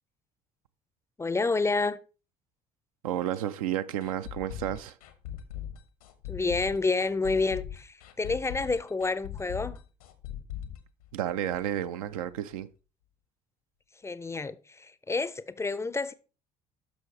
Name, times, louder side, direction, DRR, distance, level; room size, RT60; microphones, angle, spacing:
voice 1, 1.2-2.0 6.3-9.8 14.0-16.1, left 3 dB, 15° left, 0.5 m, -29 dB
voice 2, 3.0-5.0 11.1-12.7, right 11 dB, 70° right, 0.5 m, -31 dB
sound 1, 4.0-11.7 12.0-12.1 12.5-12.6, left 10 dB, 70° left, 1.0 m, -40 dB
10.5 x 6.2 x 3.1 m
figure-of-eight pair, 55°, 19 cm